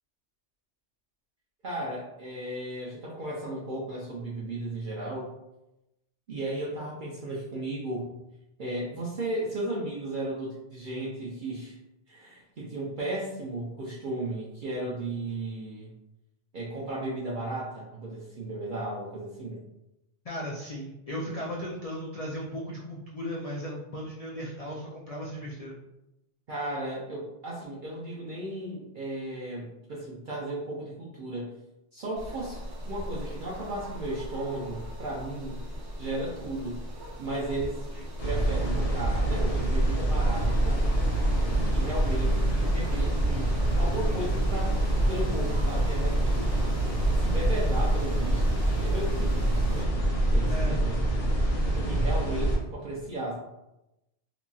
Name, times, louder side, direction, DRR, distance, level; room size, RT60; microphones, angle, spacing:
voice 1, 1.6-5.3 6.3-8.1 8.6-11.8 12.1-15.9 16.5-19.6 26.5-31.5 31.9-32.6 32.9-35.6 36.0-36.8 37.2-37.9 38.2-40.9 41.4-44.7 45.1-46.6 47.2-49.9 50.3-51.0 51.7-53.3, right 1 dB, 55° right, -5 dB, 0.6 m, -35 dB
voice 2, 20.2-25.8 37.9-38.0 50.5-50.8, equal, 75° left, -4 dB, 0.3 m, -36 dB
sound 1, 32.1-49.8, equal, 75° right, 1.1 m, -39 dB
sound 2, 38.2-52.6, right 1 dB, 40° left, 0.6 m, -25 dB
3.0 x 2.5 x 2.3 m, 0.91 s
omnidirectional pair, 1.2 m